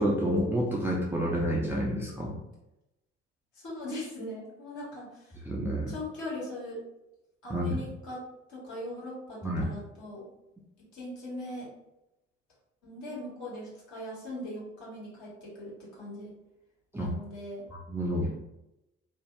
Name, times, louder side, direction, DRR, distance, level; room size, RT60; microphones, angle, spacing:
voice 1, 0.0-2.3 5.5-5.9 7.5-7.8 9.4-9.7 16.9-17.1 17.7-18.3, equal, 5° right, -4 dB, 0.4 m, -29 dB
voice 2, 3.5-5.4 5.9-6.8 7.4-10.3 10.8-11.7 12.8-16.3 17.0-17.7, left 1 dB, 50° left, -6 dB, 1.4 m, -40 dB
2.6 x 2.3 x 3.1 m, 0.91 s
figure-of-eight pair, 50°, 37 cm